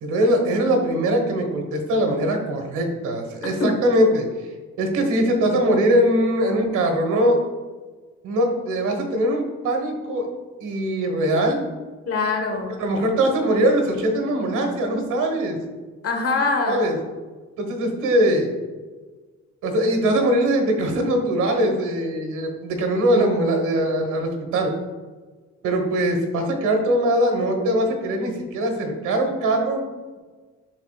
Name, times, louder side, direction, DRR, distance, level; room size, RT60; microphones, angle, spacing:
voice 1, 0.0-4.3 4.8-7.4 8.2-10.3 10.6-11.6 12.8-15.6 16.7-17.0 17.6-18.5 19.6-24.7 25.6-29.8, right 1 dB, 85° right, 4 dB, 1.4 m, -21 dB
voice 2, 12.1-12.8 16.0-16.8, left 3 dB, 50° left, 3 dB, 1.3 m, -23 dB
10.5 x 4.0 x 2.4 m, 1.3 s
cardioid pair, 90°, 30 cm